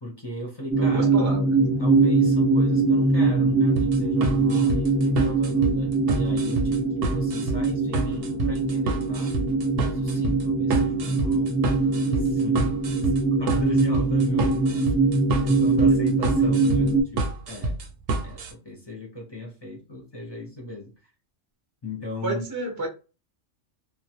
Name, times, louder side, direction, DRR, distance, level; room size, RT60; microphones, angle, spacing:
voice 1, 0.0-1.3 1.8-9.3 9.9-11.5 12.1-12.8 13.0-13.1 13.4-14.9 15.3-17.8 18.2-20.9 21.8-22.4, left 1 dB, 30° left, 0.5 m, -36 dB
sound 1, 0.7-17.0, right 3 dB, ahead, 0.8 m, -22 dB
voice 2, 0.8-1.4 22.2-22.9, right 2 dB, 25° right, 0.4 m, -30 dB
sound 2, 3.8-18.5, right 2 dB, 60° right, 0.7 m, -29 dB
2.3 x 2.1 x 2.8 m
omnidirectional pair, 1.3 m